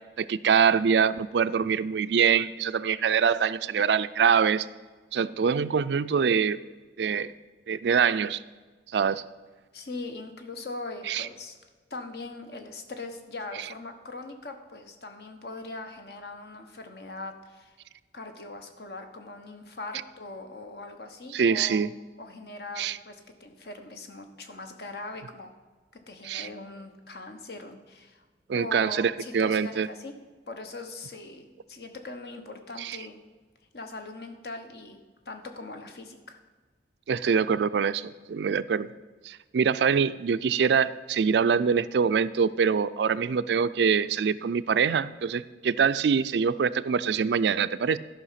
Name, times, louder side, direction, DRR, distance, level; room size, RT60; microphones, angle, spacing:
voice 1, 0.2-4.7 5.1-6.6 7.0-7.3 7.7-8.4 8.9-9.2 11.1-11.3 21.3-21.9 22.8-23.0 26.2-26.5 28.5-29.9 32.8-33.0 37.1-38.9 39.2-48.0, right 6 dB, 75° right, 15 dB, 0.4 m, -24 dB
voice 2, 9.7-11.6 11.9-17.8 18.1-21.8 22.2-25.5 26.1-28.2 28.5-30.1 30.5-33.2 33.7-36.4, left 2 dB, 65° left, 6 dB, 1.2 m, -41 dB
12.5 x 5.6 x 5.8 m, 1.4 s
head